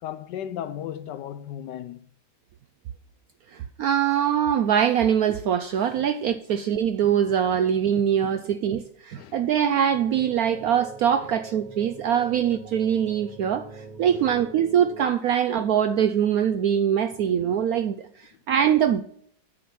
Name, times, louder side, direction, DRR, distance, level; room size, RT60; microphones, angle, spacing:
voice 1, 0.0-2.0 6.0-6.1 8.2-8.3 9.2-9.4 14.1-14.3, left 10 dB, 75° left, 1.1 m, -35 dB
voice 2, 3.5-19.0, right 9 dB, 75° right, 0.8 m, -23 dB
sound 1, 9.9-15.1, right 4 dB, 15° right, 4.5 m, -43 dB
9.4 x 7.0 x 5.7 m
omnidirectional pair, 2.0 m